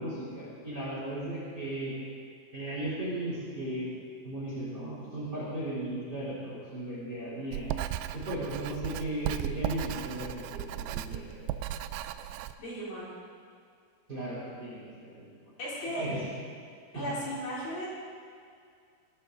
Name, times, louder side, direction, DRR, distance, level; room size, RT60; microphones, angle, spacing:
voice 1, 0.0-1.9 2.5-4.0 4.2-7.7 8.1-11.4 14.1-15.4 16.0-16.2 16.9-17.1, right 1 dB, 25° right, -8 dB, 3.6 m, -36 dB
Writing, 7.5-12.5, right 12 dB, 90° right, 2.5 m, -36 dB
voice 2, 12.6-13.1 15.6-16.1 16.9-17.9, equal, 50° left, -8 dB, 4.8 m, -36 dB
20.5 x 11.5 x 3.9 m, 2.2 s
omnidirectional pair, 5.6 m